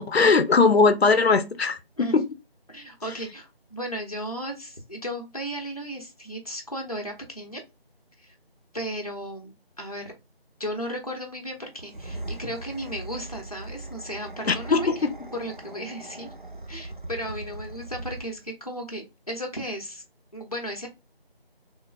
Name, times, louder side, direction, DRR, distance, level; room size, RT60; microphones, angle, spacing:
voice 1, 0.0-2.3 14.5-14.9, left 4 dB, 85° left, 0.5 m, -20 dB
voice 2, 2.7-7.6 8.2-8.3 8.7-10.1 10.6-14.9 15.3-16.3 16.7-20.0 20.3-20.9, equal, 40° left, 0.6 m, -35 dB
sound 1, 11.7-18.5, right 2 dB, 55° right, 0.6 m, -40 dB
3.1 x 2.1 x 2.3 m
figure-of-eight pair, 175°, 30 cm